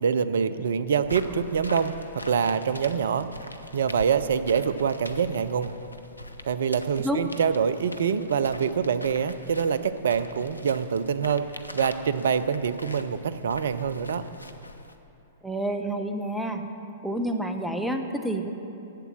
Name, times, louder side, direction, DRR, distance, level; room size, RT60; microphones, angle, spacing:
voice 1, 0.0-1.9 2.2-3.3 3.7-5.7 6.4-11.4 11.7-14.2, right 7 dB, 65° right, 13 dB, 0.5 m, -25 dB
sound 1, 1.0-15.0, equal, 90° left, 0.7 m, -43 dB
voice 2, 15.4-16.6 17.0-18.5, right 1 dB, ahead, 5 dB, 0.9 m, -28 dB
11.5 x 8.3 x 7.4 m, 2.8 s
figure-of-eight pair, 105°, 0 cm